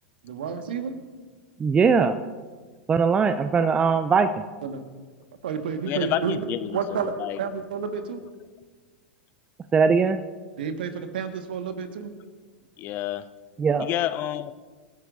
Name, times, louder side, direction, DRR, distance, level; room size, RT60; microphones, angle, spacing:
voice 1, 0.2-0.9 4.6-4.8 5.4-6.4 6.7-7.1 7.4-8.2 10.6-12.1, right 6 dB, 65° right, 7 dB, 1.7 m, -30 dB
voice 2, 1.6-2.1 2.9-4.3 9.7-10.2 13.6-13.9, right 5 dB, 20° right, 10 dB, 0.6 m, -20 dB
voice 3, 5.9-6.7 7.2-7.4 12.8-13.2 13.8-14.5, left 13 dB, 40° left, 14 dB, 0.7 m, -28 dB
27.0 x 15.5 x 2.7 m, 1.4 s
figure-of-eight pair, 90°, 6 cm